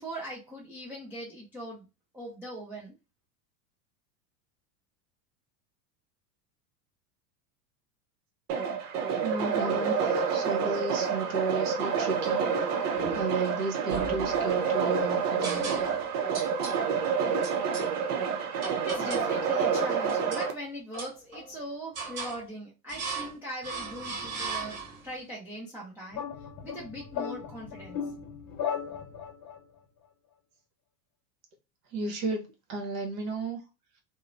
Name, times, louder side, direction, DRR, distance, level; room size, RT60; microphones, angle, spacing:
voice 1, 0.0-1.9 2.1-3.0 18.8-24.8 25.0-26.2 26.6-28.0, equal, 5° right, 0.3 m, -40 dB
sound 1, 8.5-20.5, right 6 dB, 80° right, 0.8 m, -28 dB
voice 2, 9.2-12.4 13.1-15.8 31.9-32.4 32.7-33.6, right 3 dB, 60° right, 1.2 m, -33 dB
sound 2, 13.0-13.5 13.9-14.8 15.4-16.1 16.3-16.8 17.4-17.9 18.6-19.3 19.7-20.5 20.9-21.6 22.0-22.4 22.9-23.4 23.6-25.1, right 4 dB, 35° right, 1.0 m, -37 dB
sound 3, 26.1-29.6, left 8 dB, 45° left, 0.7 m, -36 dB
2.9 x 2.1 x 2.5 m
supercardioid pair, 120°, 46 cm